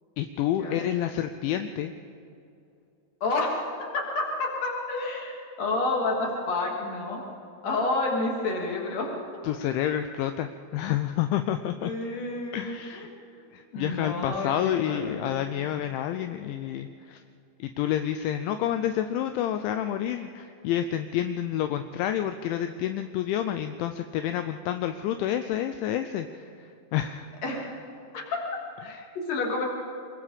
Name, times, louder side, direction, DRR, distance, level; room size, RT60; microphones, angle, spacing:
voice 1, 0.2-1.9 9.4-11.9 12.5-13.1 13.5-17.2 17.6-27.3 28.8-29.1, left 11 dB, 80° left, 8 dB, 2.9 m, -29 dB
voice 2, 3.2-3.6 3.9-7.2 7.6-9.1 11.8-13.4 13.7-15.4 27.4-27.7 28.1-28.4 29.3-29.6, left 2 dB, 40° left, -1 dB, 3.5 m, -29 dB
25.5 x 22.0 x 5.1 m, 2.6 s
omnidirectional pair, 5.5 m